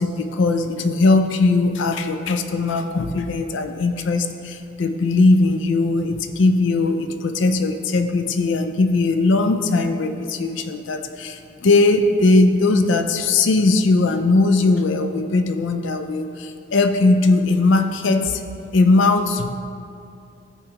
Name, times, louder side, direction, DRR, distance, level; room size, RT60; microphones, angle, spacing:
voice 1, 0.0-18.4 18.7-19.5, left 3 dB, 70° left, 7 dB, 0.4 m, -19 dB
13.5 x 4.6 x 3.0 m, 2.5 s
head